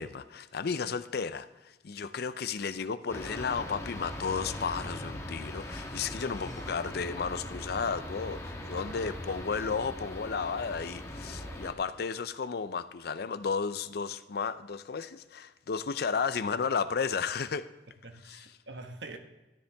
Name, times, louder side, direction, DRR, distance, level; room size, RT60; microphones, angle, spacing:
voice 1, 0.0-17.7 18.2-18.5, left 5 dB, 60° left, 14 dB, 0.5 m, -33 dB
sound 1, 3.1-11.7, left 1 dB, 15° left, 1.3 m, -40 dB
voice 2, 8.9-9.4 11.4-11.6 18.0-19.2, right 2 dB, 75° right, 6 dB, 1.2 m, -46 dB
13.0 x 9.8 x 3.4 m, 1.1 s
head